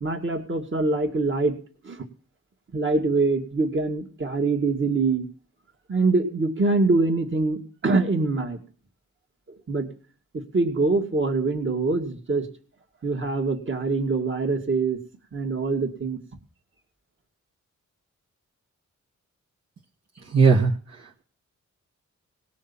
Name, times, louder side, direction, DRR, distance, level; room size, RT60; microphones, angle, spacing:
voice 1, 0.0-1.6 1.8-2.0 2.7-5.3 5.9-8.6 9.7-9.9 10.3-12.5 13.0-15.0 15.3-16.2, right 3 dB, 40° right, 4 dB, 2.2 m, -24 dB
voice 2, 20.3-21.2, right 5 dB, 60° right, -2 dB, 1.5 m, -20 dB
18.5 x 6.4 x 7.0 m, 0.41 s
wide cardioid pair, 115°, 30 cm